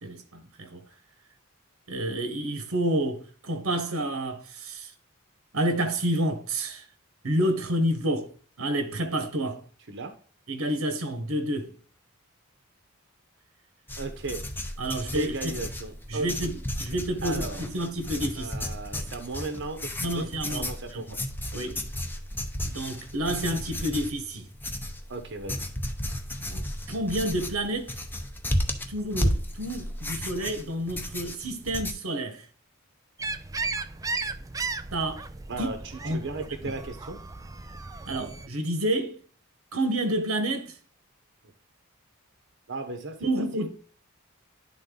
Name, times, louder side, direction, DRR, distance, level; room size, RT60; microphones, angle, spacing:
voice 1, 0.0-0.9 1.9-4.9 5.5-6.8 7.2-8.3 8.6-9.6 10.5-11.7 14.8-15.5 16.1-18.6 20.0-21.0 21.5-21.8 22.6-24.5 26.4-27.9 28.9-32.4 34.9-35.2 35.6-35.7 36.0-36.2 36.6-36.7 38.1-39.2 39.7-40.7 43.2-43.7, right 1 dB, 90° right, 1.2 m, -29 dB
sound 1, 13.9-31.9, left 1 dB, 10° left, 0.8 m, -33 dB
voice 2, 14.0-14.5 15.1-16.5 17.2-17.6 18.4-21.2 21.5-21.7 25.1-25.7 35.5-35.8 36.1-37.2 42.7-43.3 43.6-43.7, right 3 dB, 60° right, 0.9 m, -36 dB
sound 2, 33.2-38.5, right 3 dB, 15° right, 0.4 m, -35 dB
10.5 x 3.8 x 3.8 m
head